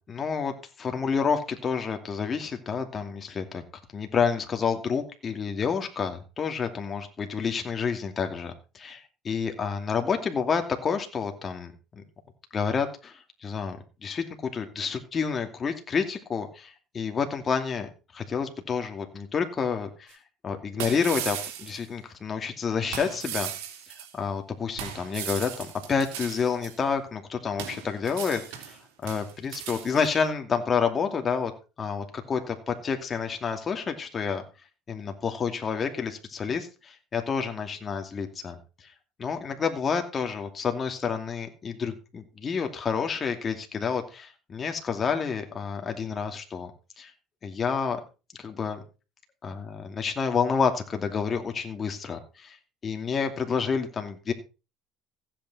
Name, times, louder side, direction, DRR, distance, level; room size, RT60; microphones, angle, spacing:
voice 1, 0.1-3.6 3.9-12.0 12.5-20.2 20.4-23.5 24.1-31.5 31.8-34.4 34.9-38.6 39.2-46.7 47.0-47.1 47.4-48.0 48.4-48.8 49.4-52.6 52.8-54.3, left 6 dB, 35° left, 5 dB, 2.6 m, -29 dB
sound 1, 20.1-20.2 20.8-21.8 22.9-24.1 24.8-26.8 27.6-28.8 29.0-30.1, right 10 dB, 85° right, 2.7 m, -37 dB
15.5 x 8.9 x 4.2 m, 0.31 s
supercardioid pair, 100°, 0 cm